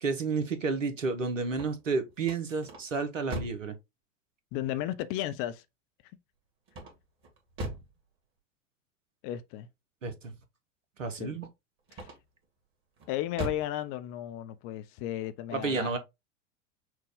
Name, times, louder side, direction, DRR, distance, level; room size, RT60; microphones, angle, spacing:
voice 1, 0.0-3.8 10.0-10.3 11.0-11.5 15.5-16.0, right 4 dB, 80° right, 0.9 m, -31 dB
sound 1, 1.4-3.7 6.7-8.0 11.9-12.4 13.0-13.8, right 1 dB, 35° right, 1.8 m, -40 dB
voice 2, 4.5-5.6 9.2-9.7 11.1-11.4 11.9-12.1 13.1-16.0, left 13 dB, 35° left, 0.5 m, -34 dB
6.0 x 2.3 x 3.5 m
figure-of-eight pair, 85°, 38 cm